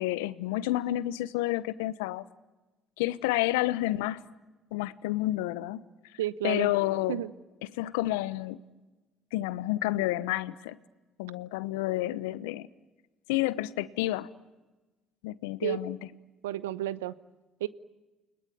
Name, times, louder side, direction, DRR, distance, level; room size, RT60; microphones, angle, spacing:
voice 1, 0.0-2.2 3.0-4.2 4.7-5.9 6.4-7.2 7.6-8.6 9.3-10.8 11.2-12.7 13.3-14.3 15.2-16.0, left 16 dB, 75° left, 17 dB, 0.9 m, -30 dB
voice 2, 6.2-6.7 7.1-7.3 15.6-15.8 16.4-17.2 17.6-17.7, right 13 dB, 80° right, 18 dB, 0.8 m, -31 dB
29.5 x 21.0 x 9.5 m, 1.1 s
hypercardioid pair, 60°, 0 cm